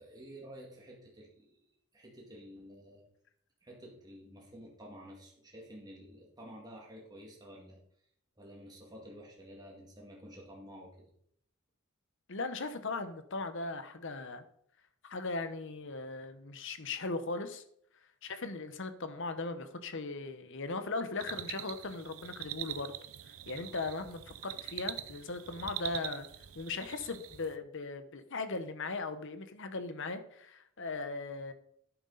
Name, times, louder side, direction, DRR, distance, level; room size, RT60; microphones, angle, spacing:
voice 1, 0.0-1.6 1.9-3.0 3.6-7.8 8.4-10.9, equal, 20° right, -2 dB, 2.2 m, -51 dB
voice 2, 12.3-14.4 15.0-17.6 18.2-22.9 23.5-26.3 26.5-31.5, left 3 dB, 60° left, 10 dB, 1.1 m, -38 dB
sound 1, 21.2-27.6, right 13 dB, 75° right, 0.6 m, -43 dB
11.0 x 9.0 x 4.1 m, 0.68 s
head